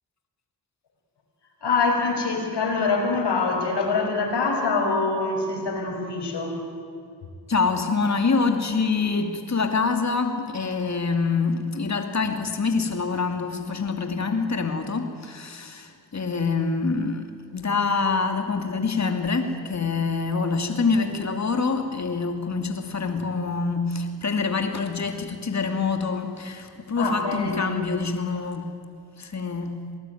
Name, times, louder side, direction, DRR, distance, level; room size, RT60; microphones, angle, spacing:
voice 1, 1.6-6.6 27.0-27.8, left 4 dB, 75° left, 2 dB, 5.7 m, -24 dB
voice 2, 7.5-17.2 17.5-28.7 29.2-29.8, left 4 dB, 40° left, 5 dB, 2.6 m, -25 dB
25.5 x 19.5 x 9.4 m, 2.4 s
supercardioid pair, 50°, 41 cm